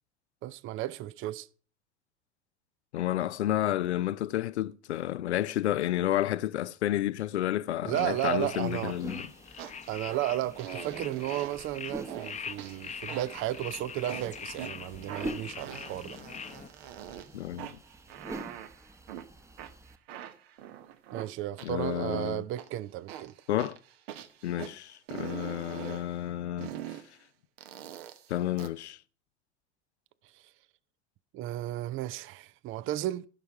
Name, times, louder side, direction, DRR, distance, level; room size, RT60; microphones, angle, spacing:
voice 1, 0.4-1.5 7.9-9.0 9.9-16.2 21.1-23.3 30.3-30.4 31.3-33.3, right 14 dB, 35° right, 0.6 m, -33 dB
voice 2, 2.9-9.3 17.3-17.8 21.6-22.5 23.5-23.8 24.4-27.0 28.3-29.0, left 13 dB, 75° left, 0.5 m, -31 dB
sound 1, 7.9-16.7, left 6 dB, 20° left, 0.8 m, -43 dB
sound 2, 8.4-20.0, right 1 dB, 10° right, 0.9 m, -46 dB
sound 3, 9.6-10.2 10.6-11.7 12.1-12.3 12.6-13.6 14.1-14.7 15.1-17.3 17.6-19.3 19.6-22.2 22.6-22.7 23.1-24.7 25.1-26.1 26.6-27.1 27.6-28.7, right 11 dB, 60° right, 1.1 m, -43 dB
16.0 x 5.8 x 4.7 m
figure-of-eight pair, 70°, 34 cm